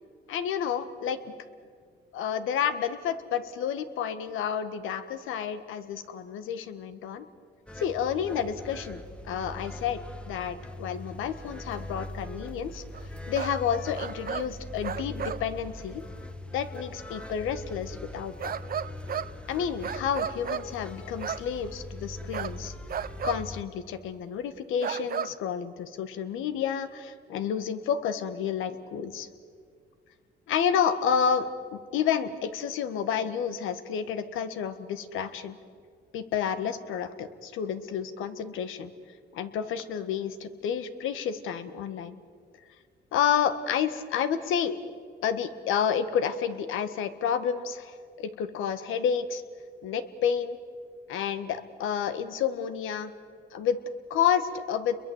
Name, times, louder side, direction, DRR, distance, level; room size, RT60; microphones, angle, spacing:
voice 1, 0.3-1.3 2.1-7.3 7.8-10.0 10.3-12.8 13.3-16.0 16.5-18.5 19.5-22.7 23.2-29.3 30.5-35.6 36.1-38.9 39.3-42.2 43.1-44.8 45.2-49.4 49.8-50.6 51.1-53.1 53.5-53.8 54.1-55.0, left 8 dB, 85° left, 11 dB, 1.6 m, -30 dB
sound 1, 7.7-23.6, left 1 dB, 5° left, 1.4 m, -41 dB
sound 2, 12.9-13.1 13.3-13.6 13.9-14.5 14.8-15.5 18.4-19.3 19.8-20.7 21.2-21.5 22.3-22.6 22.9-23.4 23.9-24.0 24.8-25.4, right 8 dB, 50° right, 0.8 m, -33 dB
30.0 x 22.5 x 8.0 m, 2.1 s
cardioid pair, 90°, 20 cm